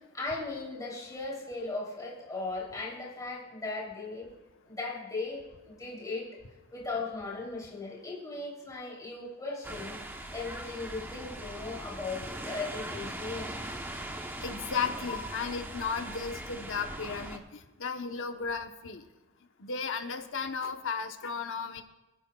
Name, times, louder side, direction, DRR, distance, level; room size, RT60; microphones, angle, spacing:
voice 1, 0.1-4.3 4.6-6.3 6.7-10.0 10.3-13.6 15.0-15.1, left 3 dB, 15° left, -5 dB, 3.4 m, -37 dB
sound 1, 9.6-17.4, right 1 dB, 10° right, 1.0 m, -40 dB
voice 2, 14.4-17.4 17.8-19.0 19.6-21.8, left 5 dB, 65° left, 5 dB, 1.1 m, -34 dB
28.0 x 10.5 x 2.4 m, 1.1 s
head